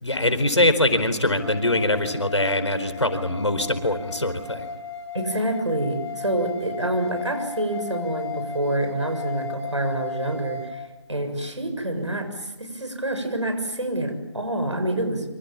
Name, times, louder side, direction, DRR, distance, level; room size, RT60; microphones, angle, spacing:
voice 1, 0.0-4.6, left 1 dB, 80° left, 10 dB, 4.4 m, -22 dB
sound 1, 1.4-10.7, left 4 dB, 60° left, 4.8 m, -35 dB
voice 2, 5.1-10.8 11.1-15.2, right 1 dB, 85° right, 7 dB, 6.9 m, -27 dB
26.5 x 26.0 x 7.3 m, 1.1 s
figure-of-eight pair, 155°, 15 cm